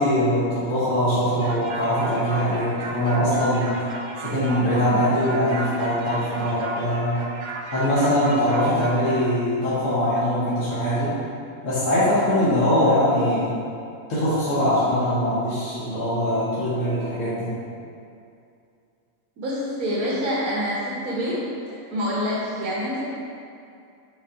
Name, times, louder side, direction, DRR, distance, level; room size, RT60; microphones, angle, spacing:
voice 1, 0.0-3.7 4.2-7.2 7.7-11.2 11.6-13.5 14.1-17.5, equal, 60° left, -11 dB, 1.6 m, -22 dB
sound 1, 1.4-9.2, right 2 dB, 70° right, 0.4 m, -35 dB
voice 2, 19.4-21.4 21.7-23.0, equal, 90° right, -7 dB, 1.6 m, -26 dB
7.3 x 3.7 x 4.1 m, 2.5 s
omnidirectional pair, 1.5 m